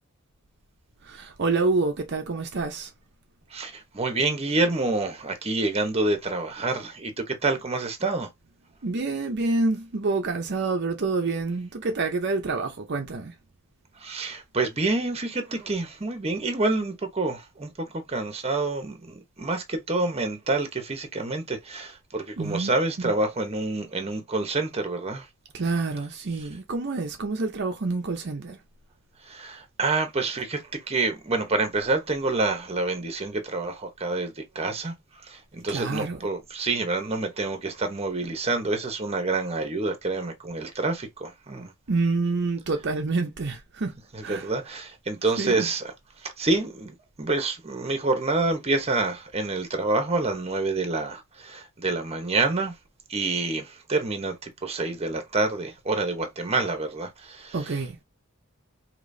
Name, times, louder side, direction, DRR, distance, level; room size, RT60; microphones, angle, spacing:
voice 1, 1.0-2.9 8.8-13.3 22.4-22.7 23.0-23.1 25.5-28.6 35.7-36.2 41.9-44.0 44.2-44.5 45.4-45.7 57.5-58.0, right 3 dB, 55° right, 0.7 m, -27 dB
voice 2, 3.5-8.3 14.0-25.3 29.2-41.7 44.1-45.9 46.2-52.8 53.1-57.6, right 3 dB, 30° right, 1.0 m, -27 dB
5.0 x 2.9 x 2.7 m
head